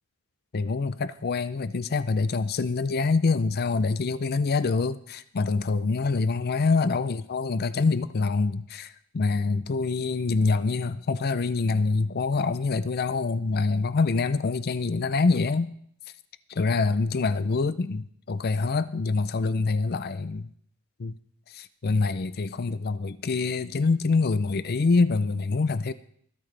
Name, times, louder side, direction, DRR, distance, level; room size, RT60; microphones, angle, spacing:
voice 1, 0.5-15.7 16.5-20.5 21.0-21.2 21.5-25.9, left 4 dB, 45° left, 0.5 m, -25 dB
21.5 x 8.7 x 3.3 m
head